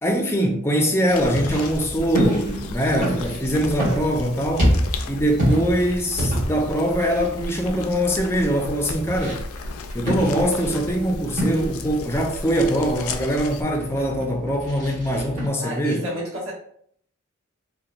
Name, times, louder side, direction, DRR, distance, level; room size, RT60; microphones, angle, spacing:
voice 1, 0.0-4.7 5.1-9.4 9.9-16.0, equal, 10° left, 0.4 m, -22 dB
sound 1, 1.1-13.6, left 3 dB, 90° left, 0.3 m, -35 dB
sound 2, 1.3-15.5, equal, 40° right, 1.3 m, -28 dB
voice 2, 15.6-16.5, equal, 75° right, 1.1 m, -31 dB
2.9 x 2.1 x 2.4 m
head